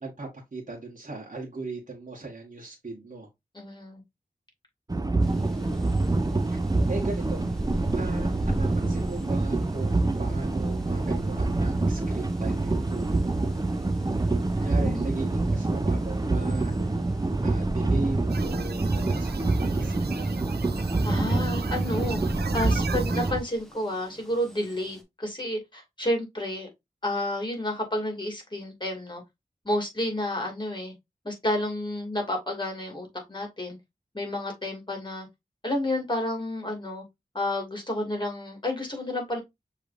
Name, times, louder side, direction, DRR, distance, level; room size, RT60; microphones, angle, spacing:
voice 1, 0.0-3.3 6.5-6.6 6.9-7.4 7.9-13.6 14.6-16.7 17.4-20.4, right 3 dB, 50° right, 1.3 m, -38 dB
voice 2, 3.5-4.0 14.6-15.1 21.0-22.2 22.5-26.7 27.0-29.2 29.6-30.9 31.2-33.8 34.1-35.3 35.6-37.0 37.3-39.4, left 1 dB, 30° left, 2.3 m, -30 dB
sound 1, 4.9-23.4, right 2 dB, 25° right, 0.5 m, -26 dB
sound 2, 5.2-25.0, equal, 5° left, 1.3 m, -43 dB
sound 3, 18.3-23.3, right 6 dB, 90° right, 0.5 m, -39 dB
6.4 x 3.1 x 2.5 m
wide cardioid pair, 45°, 16 cm